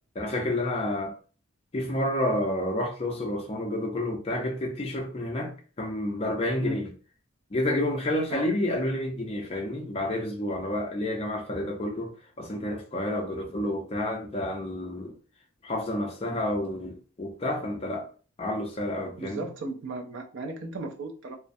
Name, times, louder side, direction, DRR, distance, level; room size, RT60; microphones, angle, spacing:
voice 1, 0.2-1.2 1.7-5.5 5.8-6.9 7.5-12.1 12.4-15.1 15.6-18.1 18.4-19.5, left 1 dB, 25° left, 0.4 m, -29 dB
voice 2, 19.2-21.4, right 2 dB, 55° right, 0.4 m, -35 dB
2.4 x 2.0 x 2.5 m
head